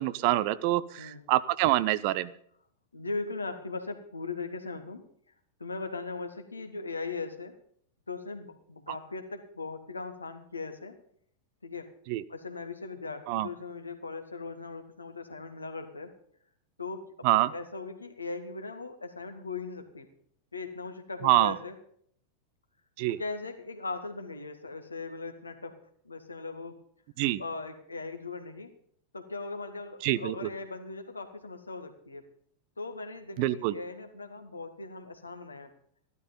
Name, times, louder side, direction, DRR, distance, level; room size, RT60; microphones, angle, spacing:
voice 1, 0.0-2.3 12.1-12.2 13.3-13.5 17.2-17.5 21.2-21.6 23.0-23.2 27.2-27.4 30.0-30.5 33.4-33.7, right 16 dB, 45° right, 16 dB, 0.7 m, -26 dB
voice 2, 2.9-5.0 5.6-7.6 8.1-11.0 11.6-11.9 12.3-16.1 16.8-20.1 20.5-21.7 23.1-25.8 26.0-26.8 27.4-28.7 29.1-32.2 32.8-35.7, left 3 dB, 80° left, 6 dB, 2.0 m, -39 dB
15.0 x 12.5 x 5.3 m, 0.63 s
figure-of-eight pair, 90°, 0 cm